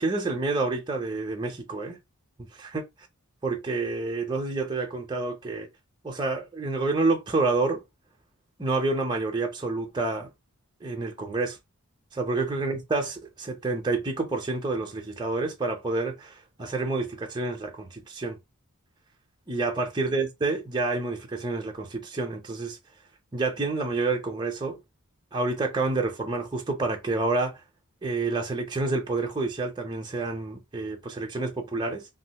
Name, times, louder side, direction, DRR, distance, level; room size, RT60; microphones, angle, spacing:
voice 1, 0.0-2.0 2.6-2.8 3.4-5.7 6.0-7.8 8.6-10.3 10.8-11.6 12.1-18.4 19.5-22.8 23.3-24.8 25.3-27.6 28.0-32.0, right 3 dB, 20° right, 0.7 m, -28 dB
3.1 x 2.6 x 2.8 m
head